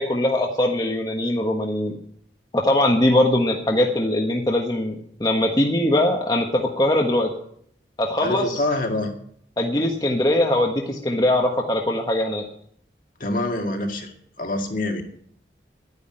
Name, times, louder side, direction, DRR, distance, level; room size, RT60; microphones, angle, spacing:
voice 1, 0.0-1.9 2.5-7.3 8.0-8.6 9.6-12.4, left 1 dB, 20° left, 0 dB, 1.3 m, -21 dB
voice 2, 8.2-9.1 13.2-14.1 14.4-15.0, left 2 dB, 50° left, 3 dB, 1.9 m, -25 dB
11.5 x 9.8 x 8.8 m, 0.65 s
head